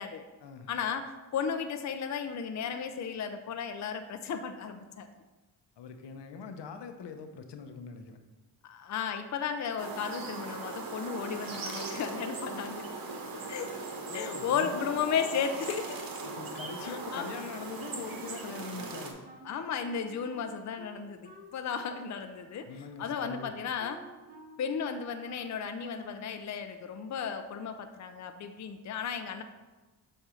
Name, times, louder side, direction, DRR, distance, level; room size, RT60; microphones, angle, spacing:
voice 1, 0.7-5.1 8.6-12.8 13.5-13.8 14.1-16.0 16.8-17.3 19.4-22.7 23.0-24.0 24.6-29.4, left 7 dB, 40° left, 7 dB, 0.6 m, -34 dB
voice 2, 5.8-8.2 14.1-15.0 16.2-19.2 22.6-23.5, left 5 dB, 70° left, 7 dB, 0.8 m, -42 dB
sound 1, 9.8-19.1, right 3 dB, 50° right, 1.2 m, -39 dB
Wind instrument woodwind instrument, 18.7-26.3, equal, 20° right, 1.3 m, -52 dB
6.9 x 2.7 x 5.7 m, 1.2 s
supercardioid pair, 55°, 43 cm